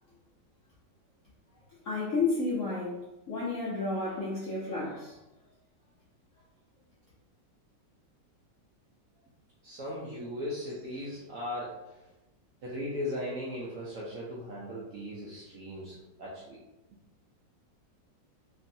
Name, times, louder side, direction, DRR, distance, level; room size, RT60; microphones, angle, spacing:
voice 1, 1.8-2.9 3.3-5.1, left 3 dB, 70° left, -6 dB, 0.7 m, -31 dB
voice 2, 9.6-12.1 12.6-16.6, left 1 dB, 70° right, -5 dB, 0.8 m, -38 dB
3.0 x 2.6 x 2.6 m, 0.96 s
omnidirectional pair, 2.0 m